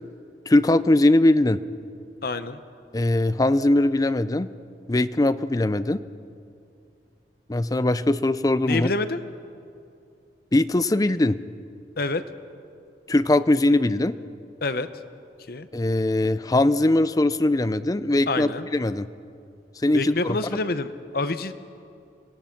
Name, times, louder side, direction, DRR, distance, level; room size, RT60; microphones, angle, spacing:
voice 1, 0.5-1.6 2.9-4.5 4.9-6.0 7.5-8.9 10.5-11.4 13.1-14.1 15.7-19.1 19.8-20.4, left 1 dB, 20° left, 14 dB, 0.5 m, -21 dB
voice 2, 2.2-2.6 8.6-9.2 12.0-12.2 14.6-14.9 15.5-15.7 18.3-18.7 19.9-21.5, left 3 dB, 55° left, 12 dB, 0.8 m, -27 dB
26.5 x 17.0 x 5.9 m, 2.5 s
head